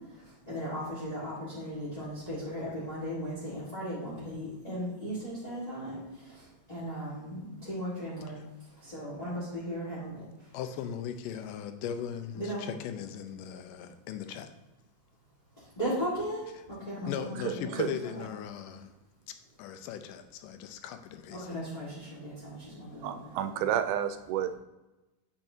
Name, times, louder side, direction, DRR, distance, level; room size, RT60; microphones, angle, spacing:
voice 1, 0.0-10.5 12.3-12.6 15.6-17.8 18.2-18.3 21.3-23.4, equal, 15° left, -9 dB, 1.4 m, -37 dB
voice 2, 10.5-14.5 17.0-18.9 19.6-21.6, left 8 dB, 90° left, 7 dB, 2.2 m, -38 dB
voice 3, 17.4-17.9 23.0-24.5, right 10 dB, 80° right, 10 dB, 1.9 m, -31 dB
8.9 x 5.5 x 2.7 m, 1.0 s
omnidirectional pair, 3.7 m